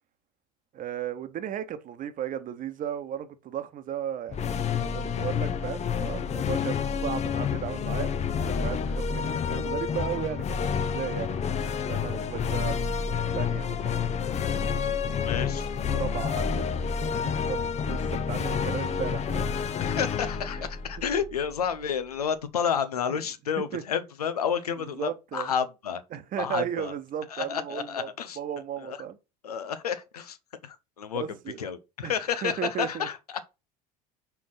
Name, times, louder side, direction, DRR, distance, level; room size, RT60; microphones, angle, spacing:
voice 1, 0.7-8.1 8.6-12.8 13.3-14.0 15.9-19.5 21.1-21.2 23.1-23.2 23.6-23.8 24.8-25.5 26.1-28.1 28.4-29.2 31.1-31.6 32.0-32.1 32.4-33.1, right 10 dB, 45° right, 1.1 m, -35 dB
sound 1, 4.3-21.7, left 6 dB, 35° left, 0.7 m, -29 dB
voice 2, 15.2-15.7 19.8-26.0 26.4-26.9 27.3-28.4 28.8-29.0 29.4-30.4 30.6-31.2 31.6-33.2, left 7 dB, 85° left, 0.7 m, -30 dB
5.7 x 4.5 x 5.7 m
hypercardioid pair, 65°, 19 cm